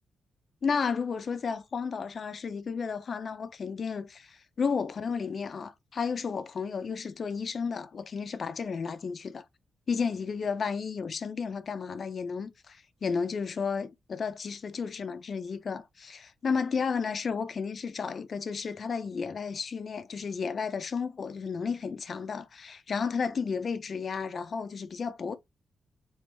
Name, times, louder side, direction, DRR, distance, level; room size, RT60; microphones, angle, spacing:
voice 1, 0.6-9.4 9.9-25.4, left 5 dB, 55° left, 0.5 m, -32 dB
3.1 x 3.0 x 3.2 m
cardioid pair, 75°, 0 cm